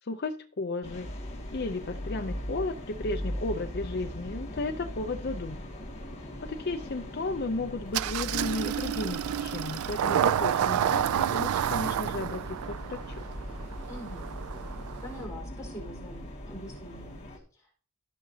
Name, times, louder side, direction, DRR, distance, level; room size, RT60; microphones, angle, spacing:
voice 1, 0.0-1.1 1.5-5.6 6.4-13.2, left 2 dB, 50° left, 5 dB, 0.6 m, -34 dB
sound 1, 0.8-17.4, equal, 30° left, 2.0 m, -40 dB
Engine starting, 7.9-15.3, right 9 dB, 85° right, 0.3 m, -30 dB
voice 2, 13.9-14.3 15.0-17.2 17.5-17.7, equal, 15° left, -4 dB, 4.5 m, -44 dB
15.5 x 6.2 x 2.8 m, 0.43 s
head